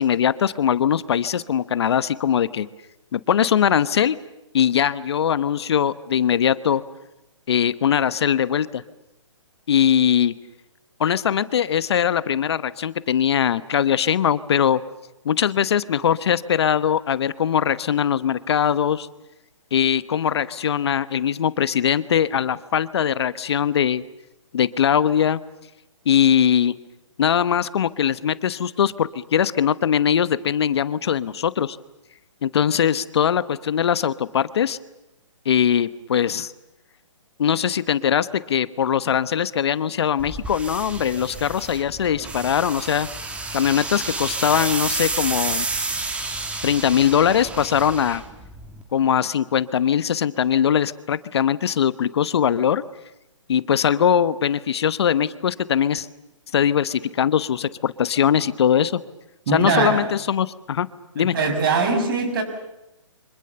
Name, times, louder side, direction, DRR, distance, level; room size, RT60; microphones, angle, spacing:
voice 1, 0.0-2.7 3.1-4.2 4.5-6.8 7.5-8.8 9.7-10.3 11.0-14.8 15.2-19.1 19.7-24.0 24.5-25.4 26.1-26.7 27.2-31.8 32.4-34.8 35.4-36.5 37.4-43.1 43.5-45.7 46.6-48.2 48.9-52.8 53.5-56.1 56.5-59.0 59.5-60.9 61.1-61.3, left 8 dB, 55° left, 16 dB, 1.0 m, -21 dB
sound 1, 40.2-48.8, right 3 dB, 5° right, 2.0 m, -30 dB
voice 2, 59.5-60.1 61.2-62.4, right 4 dB, 45° right, 7 dB, 6.3 m, -21 dB
29.0 x 25.5 x 6.9 m, 0.91 s
hypercardioid pair, 150°, 16 cm